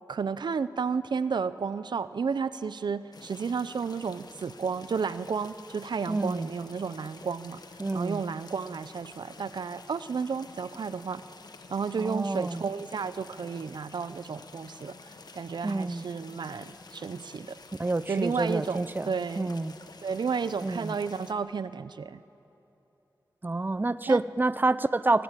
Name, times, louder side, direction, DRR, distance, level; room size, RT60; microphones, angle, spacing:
voice 1, 0.1-7.6 7.9-11.2 11.7-15.0 15.3-17.6 18.1-19.5 20.0-22.2 24.1-24.2, right 5 dB, 80° right, 14 dB, 0.6 m, -32 dB
sound 1, 3.1-21.3, left 3 dB, 65° left, 1.4 m, -49 dB
voice 2, 6.1-6.5 7.8-8.2 12.0-12.6 15.6-16.0 17.8-19.1 19.4-19.7 20.6-20.9 23.4-25.2, right 2 dB, 25° right, 15 dB, 0.6 m, -28 dB
26.0 x 18.0 x 9.1 m, 2.9 s
wide cardioid pair, 65°, 7 cm